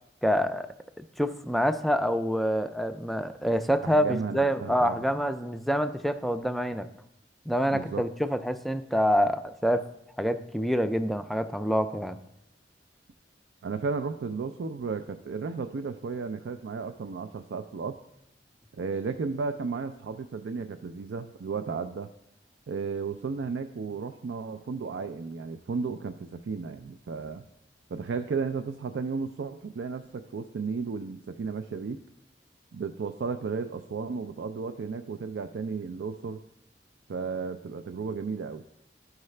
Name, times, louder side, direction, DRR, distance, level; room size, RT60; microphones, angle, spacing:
voice 1, 0.2-0.7 1.2-6.9 7.5-9.9 10.2-12.2, equal, ahead, 9 dB, 0.3 m, -26 dB
voice 2, 3.8-5.0 7.7-8.1 13.6-18.0 18.7-22.1 22.7-27.5 27.9-32.0 32.7-36.4 37.1-38.6, right 5 dB, 90° right, 8 dB, 0.4 m, -34 dB
12.5 x 4.7 x 3.2 m, 0.80 s
head